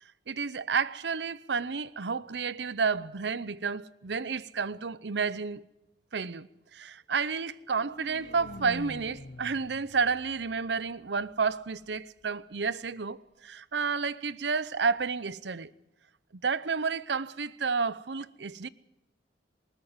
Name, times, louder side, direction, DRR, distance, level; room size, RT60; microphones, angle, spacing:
voice 1, 0.3-5.6 6.1-15.7 16.4-18.7, right 5 dB, 70° right, 0.7 m, -31 dB
sound 1, 7.5-11.5, left 1 dB, 45° left, 0.9 m, -46 dB
20.5 x 19.0 x 8.0 m
head